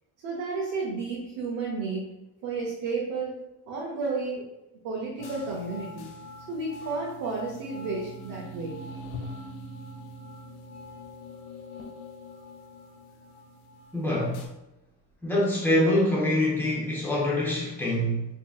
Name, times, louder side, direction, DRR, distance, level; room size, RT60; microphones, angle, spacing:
voice 1, 0.2-2.0 2.4-3.3 3.7-4.4 4.8-6.1 6.5-8.8, right 4 dB, 45° right, -4 dB, 0.7 m, -32 dB
sound 1, 5.2-14.5, left 1 dB, 90° left, 0.9 m, -43 dB
voice 2, 13.9-14.4 15.2-18.2, left 1 dB, 5° left, -5 dB, 0.4 m, -25 dB
4.7 x 2.7 x 2.3 m, 0.92 s
cardioid pair, 175°, 47 cm